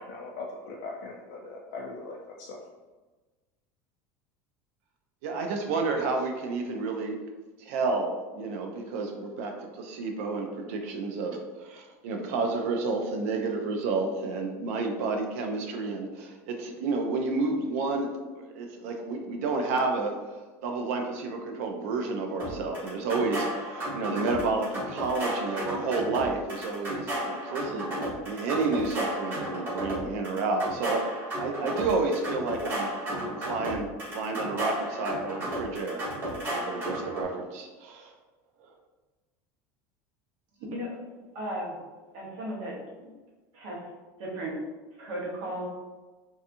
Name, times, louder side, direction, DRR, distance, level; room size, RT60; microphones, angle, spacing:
voice 1, 0.0-2.6, left 3 dB, 55° left, -2 dB, 0.3 m, -40 dB
voice 2, 5.2-7.2 7.6-27.9 28.2-36.0 36.5-38.1 38.6-38.7, right 3 dB, 75° right, 3 dB, 0.4 m, -30 dB
sound 1, 22.4-37.2, right 1 dB, 30° right, 1.1 m, -33 dB
voice 3, 41.3-41.7 42.1-42.8 43.6-43.8 44.2-44.6 45.0-45.7, right 1 dB, 55° right, -4 dB, 0.9 m, -34 dB
2.7 x 2.3 x 2.5 m, 1.2 s
cardioid pair, 175°, 8 cm